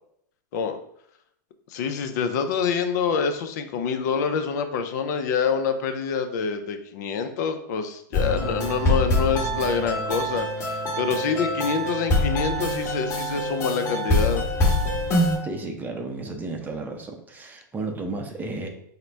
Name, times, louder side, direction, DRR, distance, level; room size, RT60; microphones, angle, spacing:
voice 1, 1.7-14.4, left 6 dB, 60° left, 7 dB, 0.5 m, -26 dB
sound 1, 8.1-15.4, left 1 dB, 25° left, 1.1 m, -24 dB
voice 2, 15.4-18.7, right 3 dB, 15° right, 4 dB, 0.6 m, -33 dB
3.8 x 2.1 x 4.4 m, 0.70 s
supercardioid pair, 130°, 10 cm